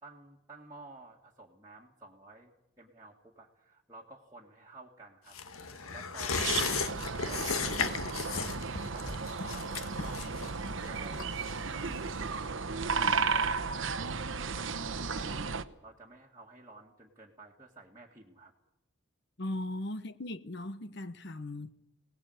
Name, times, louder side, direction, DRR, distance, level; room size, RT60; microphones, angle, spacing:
voice 1, 0.0-2.5 2.8-5.4 5.9-6.5 7.2-8.5 8.9-11.3 11.6-12.2 13.0-13.9 14.3-15.6 15.8-18.5 19.4-19.6, right 2 dB, 15° right, 1.9 m, -52 dB
sound 1, 5.3-12.4 12.7-12.8, left 5 dB, 90° left, 1.5 m, -36 dB
sound 2, 6.3-15.6, right 5 dB, 65° right, 1.0 m, -34 dB
voice 2, 19.4-21.7, left 1 dB, 55° left, 1.0 m, -38 dB
24.5 x 18.5 x 8.0 m
head